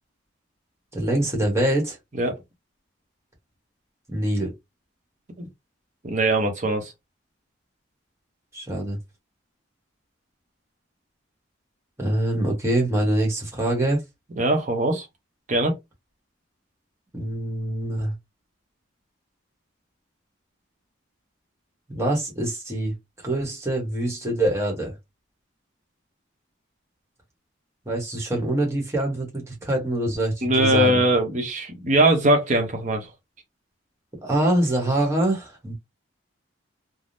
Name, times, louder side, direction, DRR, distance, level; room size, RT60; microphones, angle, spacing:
voice 1, 0.9-2.0 4.1-4.5 8.5-9.0 12.0-14.0 17.1-18.1 21.9-24.9 27.9-31.0 34.2-35.7, right 1 dB, 15° right, 1.1 m, -24 dB
voice 2, 6.0-6.9 14.4-15.1 15.5-15.8 30.4-33.1, right 1 dB, 40° right, 0.8 m, -21 dB
3.4 x 2.0 x 2.6 m
head